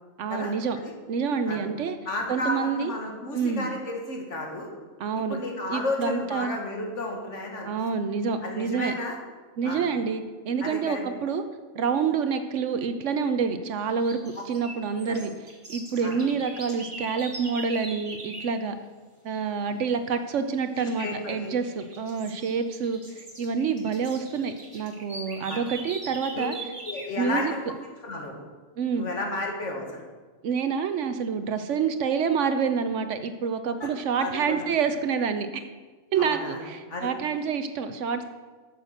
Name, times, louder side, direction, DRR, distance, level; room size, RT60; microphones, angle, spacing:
voice 1, 0.2-0.8 1.1-2.0 2.3-2.9 3.3-3.7 5.0-5.4 5.7-6.6 7.6-8.9 9.6-11.4 11.8-15.3 15.7-18.8 19.2-26.5 27.2-27.5 28.8-29.1 30.4-35.6 36.1-38.2, right 6 dB, 65° right, 9 dB, 1.0 m, -27 dB
voice 2, 2.1-4.7 5.1-7.7 8.4-9.2 9.6-9.8 10.6-11.0 15.0-15.2 16.0-16.2 20.7-21.5 25.5-25.6 26.4-26.6 26.8-27.6 28.0-28.4 28.9-30.0 33.8-33.9 34.2-34.7 36.2-36.6 36.9-37.1, left 2 dB, 60° left, 1 dB, 1.9 m, -32 dB
sound 1, 13.8-18.6 20.8-21.2 21.6-27.2, right 2 dB, 25° right, 1.2 m, -41 dB
8.9 x 6.6 x 6.5 m, 1.4 s
omnidirectional pair, 1.4 m